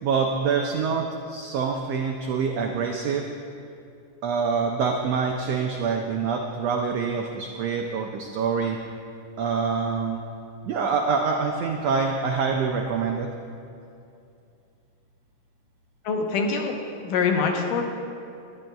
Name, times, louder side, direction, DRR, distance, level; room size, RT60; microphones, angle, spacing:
voice 1, 0.0-3.3 4.2-8.8 9.4-10.2 10.6-13.3, right 5 dB, 90° right, 2 dB, 1.4 m, -25 dB
voice 2, 16.1-16.8 17.0-17.8, left 5 dB, 85° left, 2 dB, 2.6 m, -24 dB
20.0 x 10.5 x 2.3 m, 2.5 s
omnidirectional pair, 3.7 m